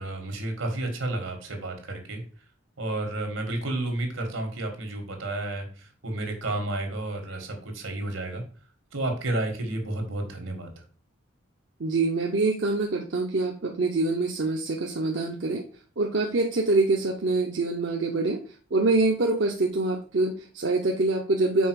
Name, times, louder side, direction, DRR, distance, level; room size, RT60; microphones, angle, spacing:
voice 1, 0.0-2.2 2.8-8.4 8.9-10.8, right 2 dB, 80° right, 4 dB, 1.8 m, -31 dB
voice 2, 11.8-15.6 16.0-18.4 18.7-21.7, right 3 dB, 60° right, 1 dB, 0.7 m, -25 dB
5.4 x 4.4 x 4.7 m, 0.40 s
head